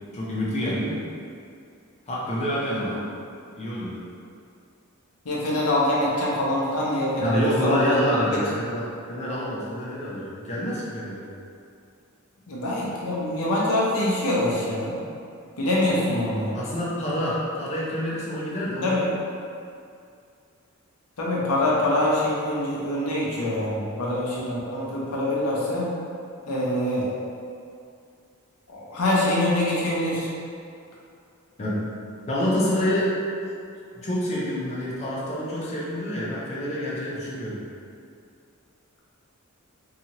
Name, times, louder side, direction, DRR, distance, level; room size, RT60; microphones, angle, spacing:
voice 1, 0.1-1.0 2.1-3.1 3.6-4.0 7.2-11.2 16.5-19.0 31.6-31.9 32.3-33.1 33.9-37.6, equal, 30° left, -7 dB, 0.5 m, -27 dB
voice 2, 5.2-7.9 12.5-14.9 15.6-16.5 18.8-19.0 21.2-25.9 26.5-27.1 28.7-30.3, left 1 dB, 85° left, -5 dB, 0.6 m, -24 dB
2.7 x 2.4 x 2.8 m, 2.4 s
head